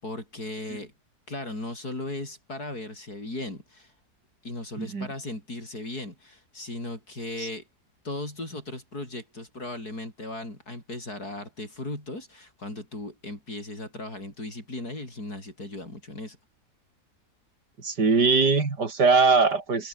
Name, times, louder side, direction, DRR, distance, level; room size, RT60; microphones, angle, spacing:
voice 1, 0.0-0.9 1.3-3.9 4.4-7.7 8.0-16.4, left 2 dB, 65° left, 8.6 m, -37 dB
voice 2, 4.8-5.1 7.4-7.5 17.8-19.9, right 4 dB, 75° right, 3.7 m, -21 dB
omnidirectional pair, 1.8 m